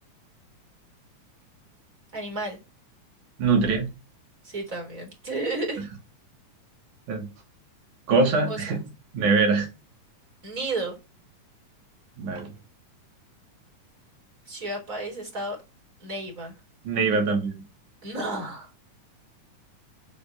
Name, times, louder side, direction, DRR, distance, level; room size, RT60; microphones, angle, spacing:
voice 1, 2.1-2.6 4.4-5.8 8.5-8.8 10.4-11.0 14.5-15.6 16.0-16.5 18.0-18.7, right 2 dB, 25° right, 2 dB, 3.9 m, -32 dB
voice 2, 3.4-3.9 7.1-7.3 8.1-8.8 9.1-9.7 12.2-12.5 16.9-17.5, right 4 dB, 70° right, 3 dB, 3.9 m, -22 dB
6.9 x 5.2 x 7.2 m, 0.26 s
omnidirectional pair, 3.7 m